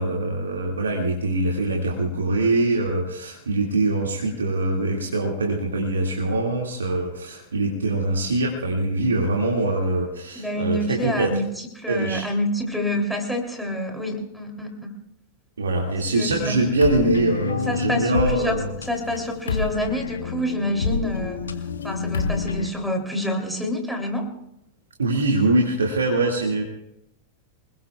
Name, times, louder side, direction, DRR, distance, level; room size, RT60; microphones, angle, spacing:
voice 1, 0.0-11.4 11.9-12.2 15.6-18.7 25.0-26.6, right 2 dB, 70° right, 0 dB, 2.1 m, -23 dB
voice 2, 10.3-14.7 16.1-16.5 17.7-21.4 21.8-24.3, left 1 dB, ahead, 0 dB, 3.1 m, -27 dB
sound 1, 16.8-22.7, left 5 dB, 70° left, 1.2 m, -28 dB
27.0 x 20.5 x 2.4 m, 0.82 s
figure-of-eight pair, 90°, 0 cm